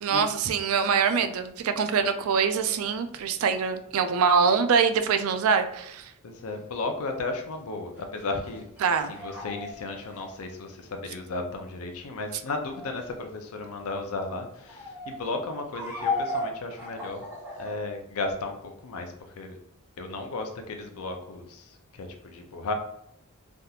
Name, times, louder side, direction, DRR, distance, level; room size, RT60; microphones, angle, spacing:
voice 1, 0.0-6.1 8.8-9.1, right 6 dB, 65° right, 9 dB, 0.4 m, -24 dB
voice 2, 6.2-8.6 9.1-17.3 17.6-19.6 20.0-22.7, left 3 dB, 75° left, 5 dB, 0.5 m, -34 dB
sound 1, 8.0-10.4 12.6-12.9 14.6-15.2 15.7-17.7, left 2 dB, 10° right, 0.9 m, -34 dB
3.4 x 2.7 x 2.4 m, 0.76 s
head